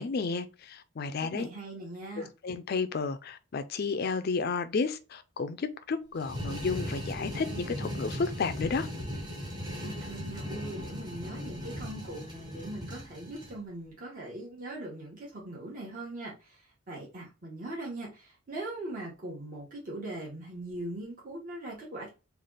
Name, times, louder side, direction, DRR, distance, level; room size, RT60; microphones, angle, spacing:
voice 1, 0.0-1.5 2.4-8.9, left 4 dB, 45° left, 0.4 m, -32 dB
voice 2, 1.2-2.3 9.8-22.1, right 1 dB, 40° right, 1.2 m, -40 dB
sound 1, 6.2-13.6, equal, 20° right, 0.9 m, -38 dB
3.4 x 2.4 x 3.7 m
head